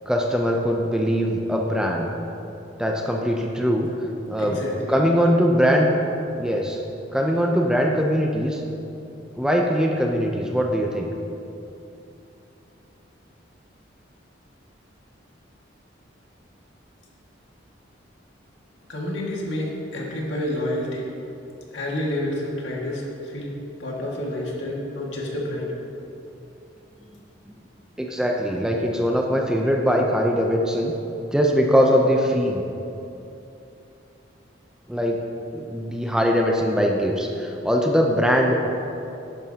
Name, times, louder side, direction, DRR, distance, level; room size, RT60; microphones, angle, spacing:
voice 1, 0.1-2.1 2.8-3.9 4.3-4.6 4.9-6.0 6.3-6.8 7.1-8.6 9.3-11.1 28.0-30.9 31.3-32.6 34.9-35.2 35.5-38.6, equal, 5° right, 0 dB, 0.6 m, -21 dB
voice 2, 4.4-4.9 18.9-21.1 21.7-23.5 23.8-25.7, left 1 dB, 75° left, -3 dB, 1.9 m, -29 dB
11.0 x 10.5 x 2.9 m, 2.8 s
head